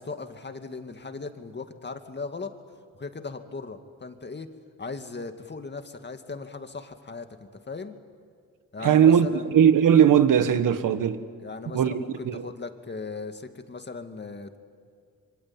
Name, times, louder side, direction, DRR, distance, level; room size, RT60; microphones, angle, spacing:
voice 1, 0.0-2.5 3.0-4.5 4.8-7.3 7.7-8.0 8.7-9.5 11.4-14.6, left 4 dB, 35° left, 2.2 m, -38 dB
voice 2, 8.8-11.2 11.7-12.5, right 8 dB, 85° right, 1.5 m, -19 dB
26.5 x 24.0 x 9.0 m
cardioid pair, 80°, 32 cm